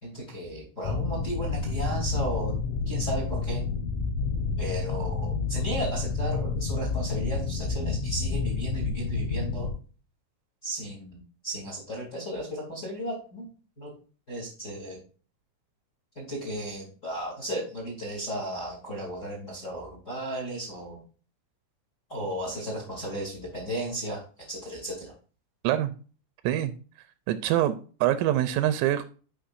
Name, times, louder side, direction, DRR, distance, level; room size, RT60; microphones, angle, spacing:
voice 1, 0.0-2.6 2.8-3.6 4.6-9.7 10.6-13.4 13.8-13.9 14.3-15.0 16.1-21.0 22.1-24.2 24.5-25.1, right 1 dB, 30° left, 1.4 m, -35 dB
sound 1, 0.8-9.7, left 4 dB, 75° left, 3.9 m, -29 dB
voice 2, 27.3-29.0, right 12 dB, 85° right, 3.1 m, -25 dB
11.5 x 4.9 x 2.5 m
omnidirectional pair, 6.0 m